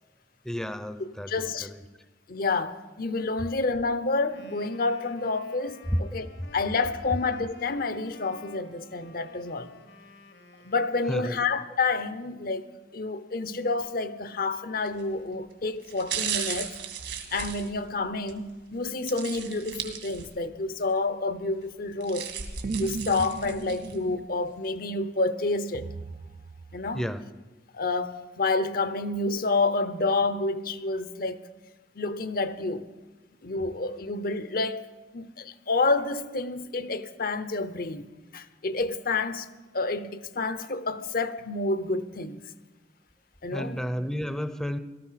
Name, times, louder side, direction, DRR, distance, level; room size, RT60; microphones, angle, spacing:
voice 1, 0.4-1.8 5.9-6.0 6.4-6.5 11.1-11.4 26.9-27.2 43.5-44.8, equal, 5° left, 0.7 m, -31 dB
voice 2, 1.3-1.7 2.3-6.3 6.5-9.7 10.6-12.7 12.9-16.8 17.3-22.3 22.8-25.9 26.7-27.1 27.7-31.4 31.9-32.9 33.4-34.9 35.1-38.1 38.3-39.5 39.7-42.4 43.4-43.8, left 3 dB, 55° left, 0.8 m, -29 dB
Wind instrument woodwind instrument, 4.2-11.9, left 3 dB, 75° left, 1.5 m, -52 dB
sound 1, 14.9-15.1 15.8-18.4 19.1-20.5 20.9-21.0 21.8-24.0 24.4-24.5, right 8 dB, 70° right, 2.2 m, -35 dB
sound 2, 22.6-24.3 25.7-27.0, right 4 dB, 50° right, 0.4 m, -36 dB
17.0 x 13.5 x 5.8 m
head